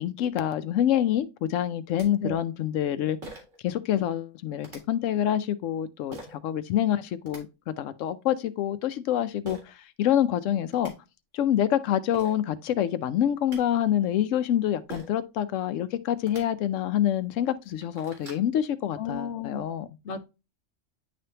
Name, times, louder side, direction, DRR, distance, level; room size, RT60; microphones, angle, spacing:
voice 1, 0.0-3.2 3.6-10.9 11.3-19.9, left 11 dB, 90° left, 0.9 m, -26 dB
sound 1, 1.7-1.8 2.0-2.1 3.2-3.6 4.6-4.8 6.1-6.4 7.0-7.4 9.4-9.6 10.4-10.5 10.7-10.9 11.8-11.9 12.1-12.4 13.2-13.6 14.9-15.2 16.2-16.4 17.1-17.2 17.6-18.5, right 2 dB, 85° right, 2.3 m, -43 dB
voice 2, 19.0-19.6 20.0-20.2, left 5 dB, 70° left, 1.1 m, -33 dB
10.0 x 3.4 x 2.8 m
omnidirectional pair, 1.3 m